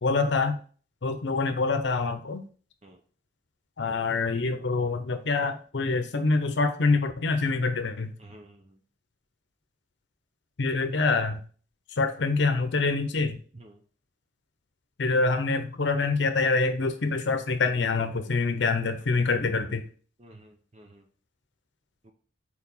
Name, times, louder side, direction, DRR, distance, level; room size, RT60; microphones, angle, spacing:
voice 1, 0.0-0.6 1.0-2.4 3.8-8.1 10.6-11.4 12.0-13.4 15.0-19.8, left 3 dB, 80° left, 8 dB, 0.7 m, -25 dB
voice 2, 8.2-8.8 13.5-13.8 20.2-21.0 22.0-22.1, right 1 dB, 35° right, 4 dB, 0.7 m, -51 dB
4.7 x 4.4 x 5.4 m, 0.42 s
head